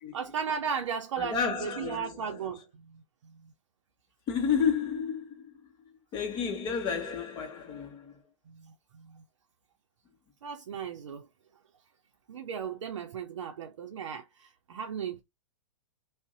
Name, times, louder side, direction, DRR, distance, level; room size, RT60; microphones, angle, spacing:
voice 1, 0.1-3.5 8.5-9.2 10.4-11.3 12.3-15.2, right 7 dB, 75° right, 0.5 m, -36 dB
voice 2, 1.2-2.3 4.3-5.5 6.1-8.1, left 6 dB, 30° left, 0.8 m, -31 dB
2.6 x 2.1 x 3.7 m
hypercardioid pair, 120°, 16 cm